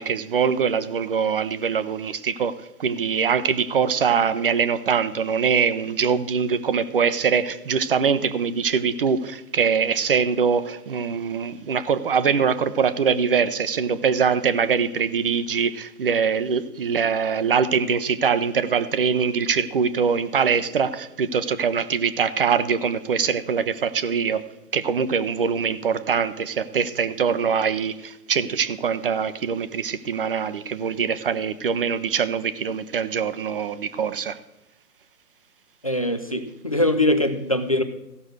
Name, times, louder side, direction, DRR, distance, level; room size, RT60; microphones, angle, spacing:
voice 1, 0.0-2.5 2.8-24.4 24.7-34.4, right 6 dB, 35° right, 13 dB, 0.6 m, -23 dB
voice 2, 35.8-37.8, left 1 dB, 25° left, 8 dB, 0.4 m, -22 dB
15.0 x 6.0 x 6.4 m, 0.92 s
hypercardioid pair, 145°, 47 cm